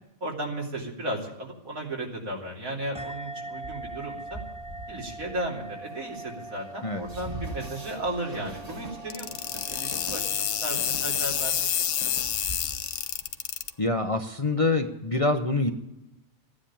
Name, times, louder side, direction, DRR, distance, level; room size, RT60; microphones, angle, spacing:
voice 1, 0.2-4.4 4.9-12.2, right 1 dB, 85° right, -2 dB, 3.6 m, -35 dB
sound 1, 2.9-12.0, right 2 dB, 5° right, 0.6 m, -43 dB
Train, 3.6-14.0, right 2 dB, 30° right, 1.6 m, -43 dB
sound 2, 9.1-13.7, left 9 dB, 75° left, 1.1 m, -28 dB
voice 2, 13.8-15.7, left 2 dB, 30° left, 5 dB, 0.7 m, -25 dB
15.5 x 9.9 x 8.7 m, 0.92 s
omnidirectional pair, 1.4 m